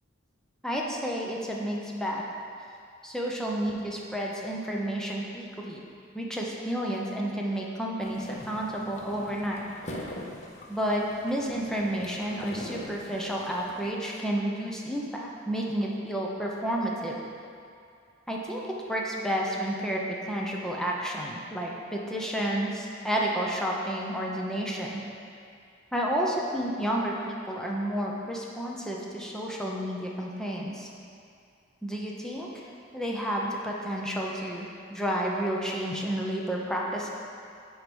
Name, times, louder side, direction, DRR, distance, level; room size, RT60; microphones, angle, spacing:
voice 1, 0.6-2.2 3.0-5.8 6.1-9.7 10.7-17.2 18.3-18.6 18.9-25.0 25.9-30.9 31.8-32.6 32.9-37.1, equal, 5° left, -3 dB, 0.8 m, -31 dB
sound 1, 8.0-13.9, left 1 dB, 35° left, 0.6 m, -42 dB
7.6 x 4.8 x 5.3 m, 2.4 s
head